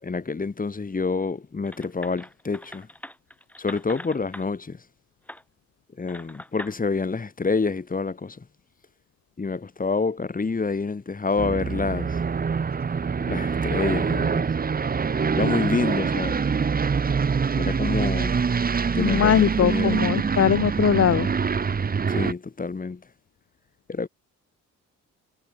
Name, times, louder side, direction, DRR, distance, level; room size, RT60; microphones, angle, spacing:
voice 1, 0.0-2.9 3.6-4.8 6.0-8.5 9.4-12.2 13.2-14.4 15.3-16.4 17.6-18.4 18.9-20.0 22.1-23.0 23.9-24.1, left 4 dB, 30° left, 5.7 m, -27 dB
sound 1, 1.7-4.5 5.3-5.4 6.1-6.8, left 1 dB, 5° left, 4.4 m, -41 dB
Aircraft, 11.4-22.3, right 5 dB, 30° right, 1.2 m, -25 dB
voice 2, 19.0-21.3, left 9 dB, 50° left, 1.7 m, -20 dB
cardioid pair, 90°, 30 cm